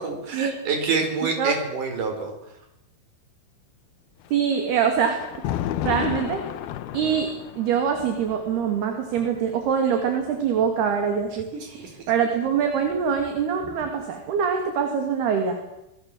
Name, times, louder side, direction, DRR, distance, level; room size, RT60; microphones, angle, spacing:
voice 1, 0.0-2.3 11.5-11.9, right 4 dB, 40° right, 5 dB, 5.6 m, -27 dB
Thunder, 4.2-11.4 12.5-14.2, left 12 dB, 90° left, 2.1 m, -34 dB
voice 2, 4.3-5.2 5.8-6.4 6.9-15.6, right 7 dB, 55° right, 5 dB, 4.0 m, -24 dB
25.5 x 21.0 x 7.7 m, 0.86 s
omnidirectional pair, 5.9 m